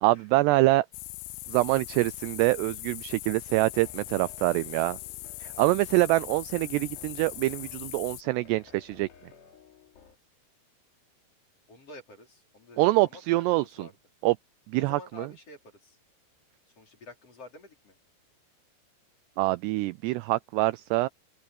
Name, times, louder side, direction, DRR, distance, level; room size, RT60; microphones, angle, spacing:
voice 1, 0.0-0.9 1.5-5.0 5.4-9.1 12.8-13.9 14.2-14.4 14.7-15.3 19.4-21.1, right 20 dB, 85° right, 2.4 m, -25 dB
sound 1, 0.9-8.2, left 21 dB, 80° left, 2.4 m, -41 dB
sound 2, 3.5-10.2, left 6 dB, 65° left, 6.0 m, -55 dB
voice 2, 11.7-13.9 14.8-16.0 16.8-18.0, left 2 dB, 35° left, 5.1 m, -49 dB
open air
omnidirectional pair, 5.2 m